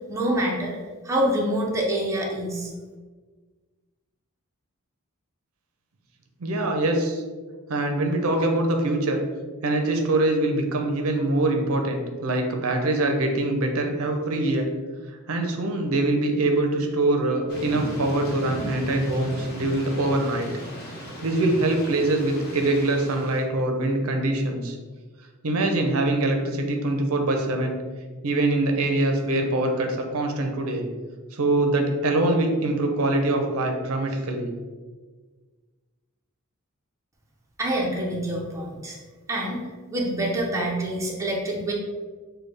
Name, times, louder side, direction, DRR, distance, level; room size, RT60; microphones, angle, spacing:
voice 1, 0.1-0.8 1.0-2.7 37.6-39.0 39.3-39.6 39.9-41.7, right 1 dB, 15° right, -3 dB, 0.7 m, -26 dB
voice 2, 6.4-7.2 7.7-9.2 9.6-14.7 15.3-20.5 21.2-24.8 25.4-27.8 28.2-30.9 31.3-34.5, right 2 dB, 70° right, 3 dB, 0.6 m, -24 dB
Thunder / Rain, 17.5-23.4, equal, 50° left, 1.1 m, -36 dB
6.3 x 2.2 x 3.3 m, 1.4 s
head